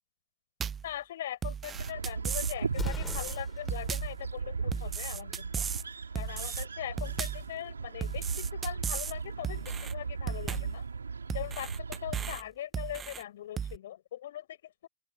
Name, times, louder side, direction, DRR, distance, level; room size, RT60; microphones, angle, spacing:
sound 1, 0.6-0.9 1.4-2.6 2.9-3.4 3.7-4.2 4.7-5.9 6.2-6.7 7.0-7.5 8.0-9.1 9.4-9.9 10.3-10.8 11.3-12.4 12.7-13.2 13.6-13.8, right 7 dB, 20° right, 0.6 m, -35 dB
voice 1, 0.8-5.6 6.1-10.9 11.3-14.9, left 12 dB, 60° left, 7.7 m, -41 dB
sound 2, 1.7-12.4, right 5 dB, 75° right, 4.7 m, -37 dB
Explosion, 2.7-3.8, left 5 dB, 15° left, 3.2 m, -39 dB
open air
figure-of-eight pair, 90°, 0 cm